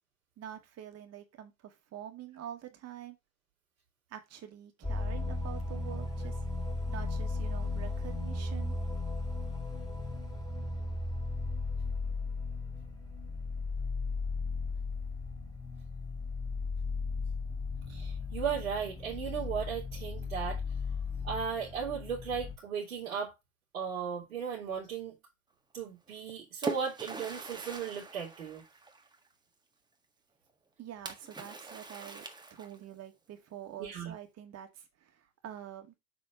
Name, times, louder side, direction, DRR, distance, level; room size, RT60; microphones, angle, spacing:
voice 1, 0.4-3.2 4.1-6.4 6.9-8.7 30.8-35.9, right 10 dB, 40° right, 2.0 m, -46 dB
sound 1, 4.8-22.6, left 3 dB, 10° left, 2.5 m, -36 dB
voice 2, 17.9-20.6 21.2-23.3 23.7-25.2 25.7-28.6 33.8-34.1, right 7 dB, 80° right, 2.9 m, -36 dB
Splash splatter, 26.1-29.3 31.1-33.0, right 2 dB, 10° right, 1.5 m, -42 dB
7.5 x 4.2 x 4.7 m
hypercardioid pair, 85°, 41 cm